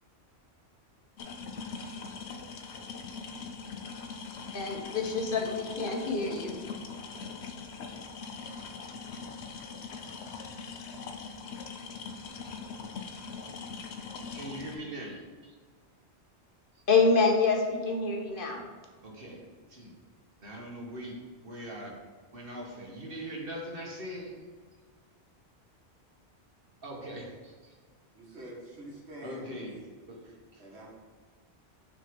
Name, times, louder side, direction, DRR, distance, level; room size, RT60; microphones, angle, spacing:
sound 1, 1.2-14.8, left 5 dB, 90° left, 1.0 m, -42 dB
voice 1, 4.5-6.6 16.9-18.6, left 4 dB, 55° left, 1 dB, 1.1 m, -26 dB
voice 2, 14.3-15.6 16.7-16.8 19.0-19.4 19.7-19.9 20.4-22.0 22.3-24.3 26.8-27.8 28.3-28.4 29.2-29.8 30.1-30.7, equal, 60° right, -2 dB, 1.7 m, -41 dB
voice 3, 28.1-29.6 30.6-30.9, right 1 dB, 85° right, -3 dB, 1.8 m, -46 dB
6.3 x 4.1 x 5.2 m, 1.5 s
omnidirectional pair, 1.1 m